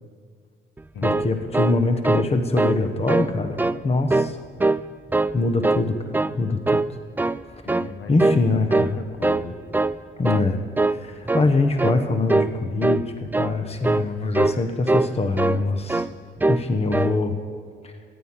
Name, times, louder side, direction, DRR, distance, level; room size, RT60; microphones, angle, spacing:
sound 1, 0.8-2.3 2.6-2.8 3.1-3.8 4.1-4.8 5.1-5.9 6.1-6.4 6.7-7.4 7.7-7.9 8.2-8.5 8.7-9.5 9.7-10.0 10.2-10.5 10.8-11.0 11.3-11.5 11.8-12.0 12.3-12.5 12.8-13.0 13.3-13.5 13.8-14.1 14.3-14.6 14.9-15.6 15.9-16.1 16.4-16.7 16.9-17.2, right 2 dB, 10° right, 0.3 m, -22 dB
voice 1, 1.0-4.4 5.3-6.8 8.1-9.0 10.2-10.6 10.9-16.1 16.5-17.4 17.8-17.9, left 3 dB, 30° left, 7 dB, 1.2 m, -23 dB
voice 2, 7.6-9.6, left 5 dB, 70° left, 7 dB, 1.4 m, -38 dB
14.0 x 10.5 x 7.5 m, 2.1 s
cardioid pair, 90°, 20 cm